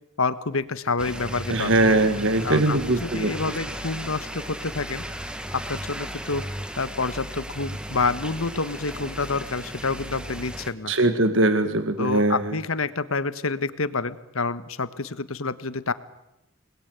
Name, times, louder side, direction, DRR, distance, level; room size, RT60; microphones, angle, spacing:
voice 1, 0.2-1.7 2.4-5.0 5.5-6.4 6.8-10.9 12.0-15.9, left 4 dB, 80° left, 13 dB, 1.4 m, -28 dB
sound 1, 1.0-10.7, equal, 5° right, 1.6 m, -35 dB
voice 2, 1.5-3.3 10.9-12.6, right 2 dB, 60° right, 9 dB, 1.8 m, -21 dB
28.0 x 20.5 x 9.5 m, 0.90 s
head